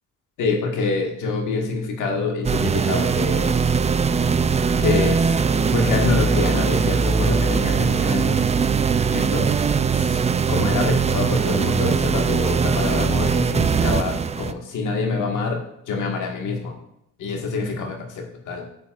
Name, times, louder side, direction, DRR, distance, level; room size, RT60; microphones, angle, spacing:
voice 1, 0.4-3.6 4.8-8.4 9.1-9.7 10.0-10.2 10.5-16.8 17.2-18.7, left 4 dB, 80° left, 1 dB, 1.8 m, -26 dB
sound 1, 2.4-14.5, right 5 dB, 20° right, 0.4 m, -20 dB
9.5 x 8.6 x 2.5 m, 0.77 s
cardioid pair, 90°, 30 cm